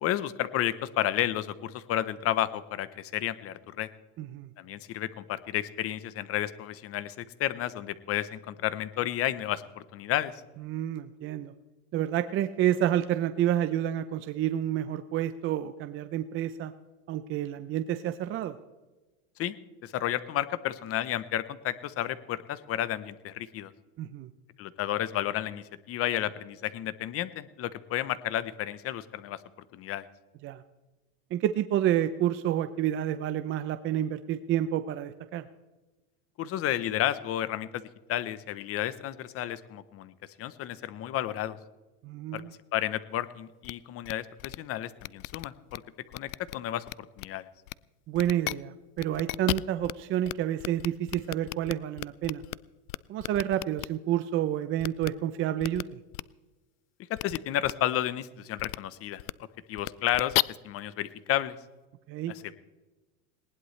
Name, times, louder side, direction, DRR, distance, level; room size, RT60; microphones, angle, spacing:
voice 1, 0.0-3.9 4.6-10.3 19.4-19.6 19.8-23.7 24.6-29.4 29.7-30.0 36.4-40.1 40.4-41.6 42.3-42.4 42.7-45.8 46.1-46.8 47.2-47.5 57.1-59.2 59.7-60.3 60.6-61.5 62.3-62.5, left 12 dB, 30° left, 15 dB, 0.9 m, -32 dB
voice 2, 4.2-4.5 10.6-11.5 11.9-16.7 17.1-18.6 24.0-24.3 30.4-30.6 31.3-35.5 42.0-42.5 48.1-52.4 53.1-56.0 62.1-62.3, right 11 dB, 30° right, 11 dB, 0.6 m, -29 dB
sound 1, 43.6-43.7 44.1-44.2 44.4-44.6 45.0-45.8 46.1-46.6 46.9-47.3 47.7-47.8 48.1-48.5 49.0-49.9 50.3-50.4 50.6-52.6 52.9-53.9 54.8-55.1 55.6-55.8 56.1-56.2 57.2-57.4 57.6-57.7 58.6-58.8 59.2-59.3 59.8-60.4, left 23 dB, 70° left, 0.6 m, -33 dB
19.5 x 19.0 x 3.2 m, 1.2 s
supercardioid pair, 140°, 44 cm